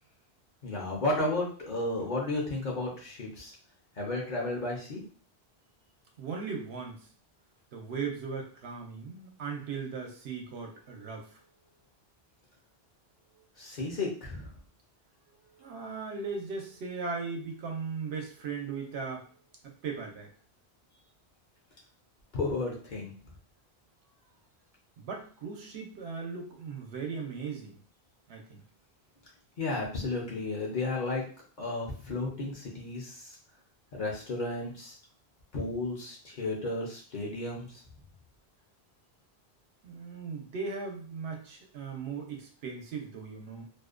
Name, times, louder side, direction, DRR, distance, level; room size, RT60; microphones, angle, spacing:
voice 1, 0.6-3.5 4.0-5.0 13.6-14.5 22.3-23.1 29.6-31.2 31.6-33.3 33.9-35.0 35.5-37.7, left 2 dB, 50° left, -3 dB, 0.7 m, -33 dB
voice 2, 6.2-7.1 7.7-11.5 13.3-13.4 15.3-20.3 25.0-27.7 28.3-28.6 39.8-43.7, right 5 dB, 85° right, 1 dB, 0.9 m, -38 dB
2.5 x 2.1 x 2.4 m, 0.43 s
omnidirectional pair, 1.1 m